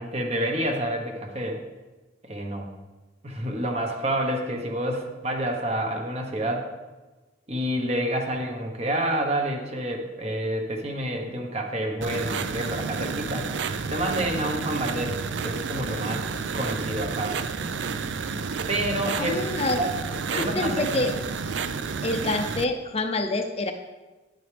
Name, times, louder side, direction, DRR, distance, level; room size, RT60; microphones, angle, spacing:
voice 1, 0.0-1.6 2.3-2.7 3.2-6.7 7.5-13.6 13.9-16.3 16.5-17.4 18.7-19.4 19.8-21.0, right 1 dB, 35° right, 2 dB, 1.1 m, -28 dB
sound 1, 12.0-22.6, right 5 dB, 70° right, 0.5 m, -30 dB
voice 2, 19.2-19.8 20.3-21.1 22.0-23.7, left 2 dB, 35° left, 6 dB, 0.6 m, -27 dB
10.0 x 7.8 x 3.4 m, 1.2 s
head